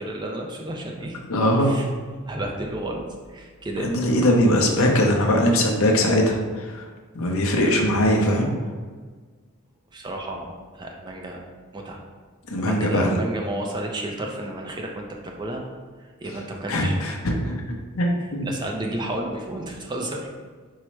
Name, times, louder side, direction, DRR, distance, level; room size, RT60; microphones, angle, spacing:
voice 1, 0.0-1.2 1.6-1.9 2.3-3.0 3.3-3.9 9.9-11.4 11.7-12.0 12.6-15.6 16.0-17.0 18.2-20.3, right 1 dB, 20° right, 1 dB, 0.4 m, -32 dB
voice 2, 1.3-1.8 3.8-6.8 7.1-8.5 12.5-13.2 16.7-17.6 17.9-18.5, equal, 70° left, 1 dB, 0.6 m, -21 dB
4.7 x 2.0 x 4.4 m, 1.5 s
head